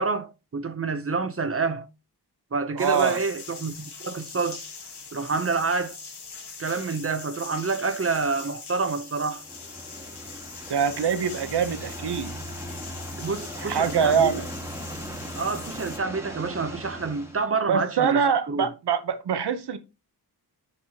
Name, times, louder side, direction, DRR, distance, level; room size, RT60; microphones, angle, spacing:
voice 1, 0.0-1.9 2.5-4.6 5.1-6.0 6.6-9.4 13.2-14.3 15.4-18.7, right 4 dB, 35° right, 0.6 m, -28 dB
voice 2, 2.7-3.2 10.7-12.3 13.6-14.5 17.7-19.8, right 7 dB, 85° right, 0.9 m, -24 dB
sound 1, 2.8-16.0, left 5 dB, 80° left, 1.7 m, -42 dB
sound 2, 9.4-17.4, equal, 5° right, 1.4 m, -38 dB
9.5 x 5.4 x 2.8 m
wide cardioid pair, 135°, 39 cm